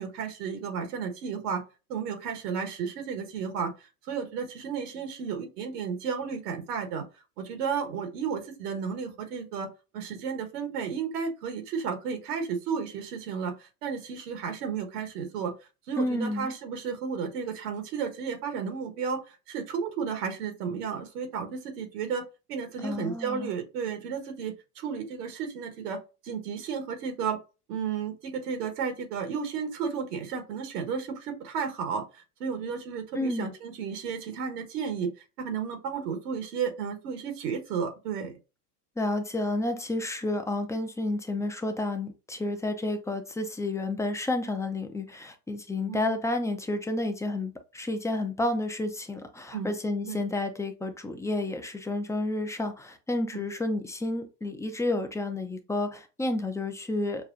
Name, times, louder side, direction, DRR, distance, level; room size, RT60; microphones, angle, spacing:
voice 1, 0.0-1.6 1.9-3.7 4.1-7.0 7.4-15.5 15.9-27.4 27.7-35.1 35.4-38.3 45.9-46.2 49.5-49.7 50.1-50.2 53.3-53.5, right 6 dB, 75° right, 1.3 m, -33 dB
voice 2, 16.0-16.5 22.8-23.5 33.1-33.5 39.0-57.3, left 2 dB, 5° left, 0.4 m, -30 dB
5.8 x 2.2 x 2.5 m
hypercardioid pair, 95°, 47 cm